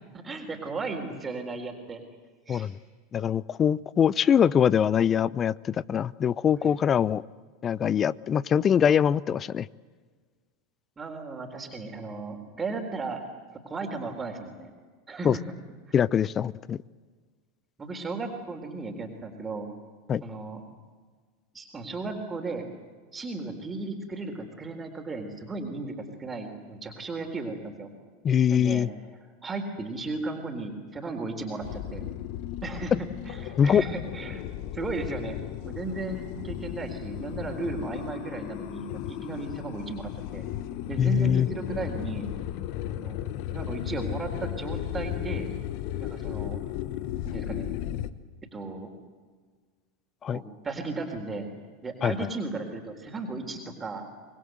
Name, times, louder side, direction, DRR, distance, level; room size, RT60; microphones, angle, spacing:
voice 1, 0.1-2.0 2.5-2.7 6.6-6.9 11.0-13.2 13.5-14.7 15.1-15.4 17.8-19.7 20.2-20.6 21.5-22.7 23.1-27.9 28.5-28.9 29.4-32.1 32.6-32.9 33.2-34.4 34.7-35.4 35.6-40.4 40.9-42.3 43.0-43.2 43.5-45.5 46.0-46.6 47.2-47.7 48.5-48.9 50.3-51.5 51.8-54.1, right 3 dB, 20° right, 3 dB, 3.8 m, -35 dB
voice 2, 3.1-7.2 7.6-9.7 15.2-15.4 15.9-16.8 20.1-20.2 28.2-28.9 33.6-33.8 41.0-41.5 50.2-50.4 52.0-52.1, left 8 dB, 30° left, 21 dB, 0.6 m, -23 dB
sound 1, 31.6-48.1, left 12 dB, 55° left, 1.1 m, -35 dB
25.5 x 21.0 x 8.0 m, 1.5 s
hypercardioid pair, 85°, 0 cm